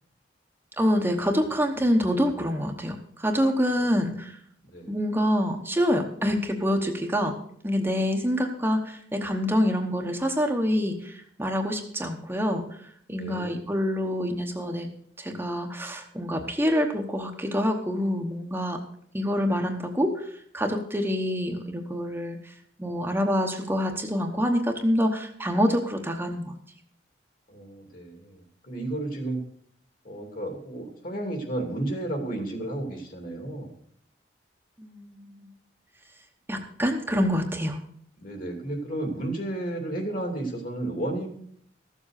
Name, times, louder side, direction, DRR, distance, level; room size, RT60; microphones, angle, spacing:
voice 1, 0.8-4.4 4.9-7.3 7.6-12.7 13.1-14.9 15.2-18.8 19.1-22.5 22.8-26.6 34.8-35.5 36.5-37.8, equal, 10° right, 3 dB, 1.1 m, -26 dB
voice 2, 13.2-13.6 27.5-29.4 30.0-33.7 38.2-41.3, right 1 dB, 50° left, 4 dB, 2.8 m, -32 dB
14.0 x 7.4 x 6.5 m, 0.65 s
head